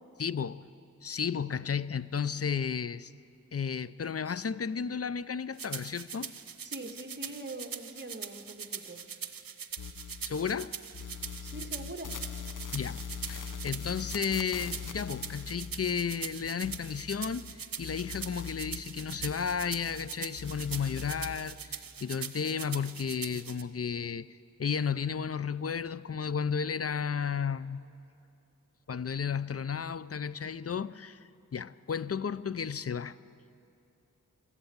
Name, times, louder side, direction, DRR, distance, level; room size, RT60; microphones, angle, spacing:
voice 1, 0.2-0.7 1.0-3.1 3.5-6.3 10.2-10.7 12.7-27.8 28.9-33.2, left 6 dB, 45° left, 0.6 m, -33 dB
sound 1, 5.6-23.6, right 7 dB, 85° right, 0.8 m, -42 dB
voice 2, 6.6-9.0 11.4-12.1, right 1 dB, 35° right, 2.0 m, -43 dB
sound 2, 9.8-10.7 10.9-17.5 17.8-20.1 20.4-21.4, left 6 dB, 65° left, 1.0 m, -42 dB
22.5 x 14.0 x 8.7 m
cardioid pair, 45°, 33 cm